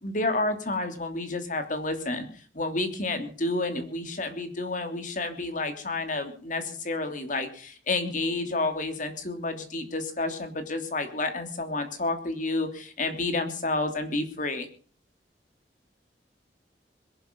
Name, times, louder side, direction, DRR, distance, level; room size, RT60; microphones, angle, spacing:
voice 1, 0.0-2.3 2.5-14.7, left 2 dB, 45° left, 7 dB, 3.0 m, -30 dB
21.5 x 11.5 x 5.3 m, 0.44 s
head